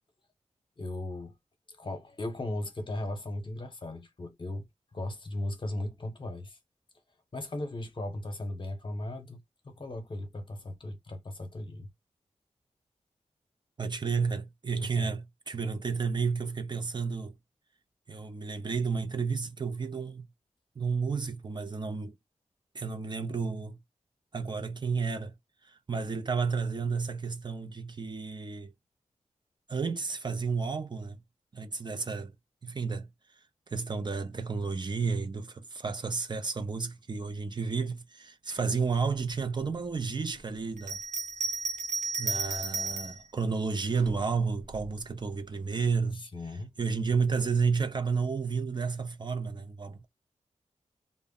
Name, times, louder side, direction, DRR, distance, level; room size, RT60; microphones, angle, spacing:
voice 1, 0.8-1.4 1.7-4.7 4.9-6.6 7.3-11.9 14.8-15.1 46.1-46.7, left 1 dB, 45° left, 0.8 m, -37 dB
voice 2, 13.8-17.4 18.1-20.3 20.8-22.1 22.7-23.8 24.3-25.3 25.6-28.7 29.7-31.2 31.5-32.3 32.6-33.1 33.7-41.0 42.2-46.2 46.8-50.1, right 5 dB, 40° right, 0.4 m, -31 dB
Bell, 40.8-43.2 44.0-44.9, right 3 dB, 85° right, 0.6 m, -33 dB
2.0 x 2.0 x 3.6 m
wide cardioid pair, 75°, 12 cm